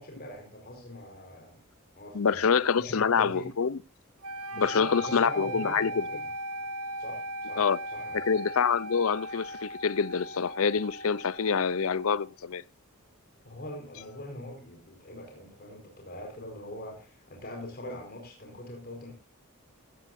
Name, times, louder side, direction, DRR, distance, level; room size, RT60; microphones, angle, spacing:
voice 1, 0.0-1.6 1.9-2.5 2.8-3.5 4.5-6.3 7.0-8.3 13.4-19.2, left 1 dB, 45° left, 4.6 m, -42 dB
voice 2, 2.1-3.8 4.6-5.9 7.6-7.8 8.1-12.6, left 6 dB, 70° left, 0.6 m, -26 dB
sound 1, 4.2-12.3, right 1 dB, 80° right, 0.9 m, -38 dB
16.0 x 15.0 x 2.6 m
head